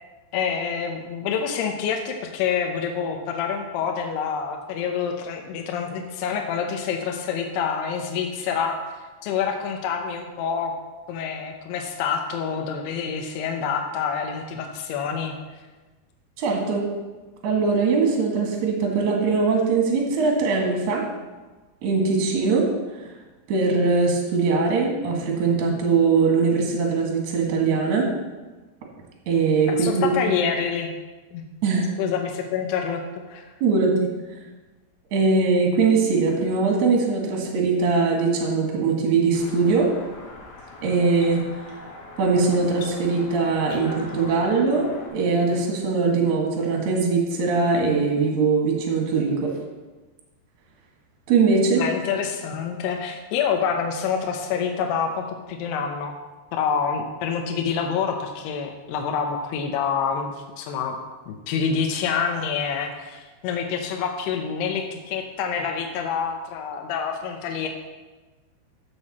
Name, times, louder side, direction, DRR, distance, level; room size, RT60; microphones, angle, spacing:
voice 1, 0.3-9.0 9.2-10.7 11.1-15.4 29.7-30.9 31.3-31.5 32.0-33.0 33.3-33.4 51.8-56.1 56.5-61.0 61.3-67.7, left 6 dB, 75° left, 3 dB, 2.6 m, -27 dB
voice 2, 16.4-16.9 17.4-21.1 21.8-23.2 23.5-28.1 29.3-30.1 31.6-31.9 33.6-34.0 34.3-34.4 35.1-39.9 40.8-41.8 42.2-49.6 51.3-51.8, right 4 dB, 50° right, 0 dB, 2.5 m, -21 dB
sound 1, 39.3-45.1, left 2 dB, 60° left, 3.1 m, -42 dB
13.5 x 7.1 x 4.2 m, 1.2 s
omnidirectional pair, 5.3 m